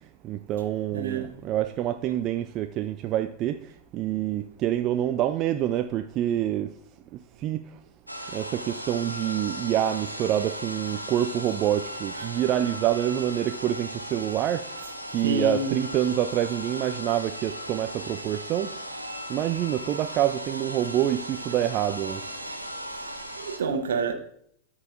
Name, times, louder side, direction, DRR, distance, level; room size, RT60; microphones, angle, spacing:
voice 1, 0.2-3.6 3.9-6.7 7.4-7.6 8.3-14.6 15.1-18.7 19.3-22.2, right 12 dB, 35° right, 0.4 m, -26 dB
voice 2, 0.9-1.3 12.2-12.3 15.2-15.8 23.0-23.1 23.4-24.1, right 3 dB, 65° right, 1.1 m, -28 dB
sound 1, 8.1-23.6, equal, 90° right, 0.9 m, -37 dB
13.0 x 5.6 x 2.5 m
figure-of-eight pair, 90°, 0 cm